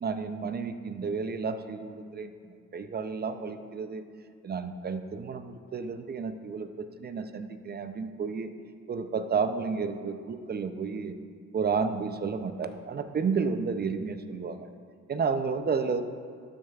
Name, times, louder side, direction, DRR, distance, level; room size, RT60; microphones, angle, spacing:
voice 1, 0.0-2.3 2.7-4.0 4.4-8.5 8.9-11.1 11.5-14.7 15.1-16.1, right 5 dB, 35° right, 9 dB, 0.5 m, -31 dB
12.0 x 6.4 x 2.4 m, 2.3 s
cardioid pair, 90°, 30 cm